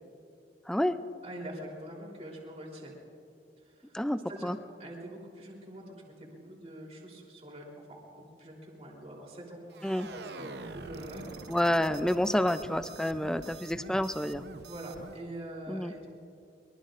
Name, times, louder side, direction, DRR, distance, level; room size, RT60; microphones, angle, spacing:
voice 1, 0.7-1.0 3.9-4.6 9.8-10.1 11.5-14.4 15.7-15.9, left 1 dB, 5° left, 11 dB, 0.4 m, -29 dB
voice 2, 1.2-2.9 3.6-4.0 4.3-4.5 4.8-11.3 14.6-16.1, right 1 dB, 35° right, -2 dB, 3.5 m, -44 dB
sound 1, 9.7-15.2, right 3 dB, 65° right, 0.7 m, -45 dB
23.5 x 23.0 x 2.5 m, 2.7 s
head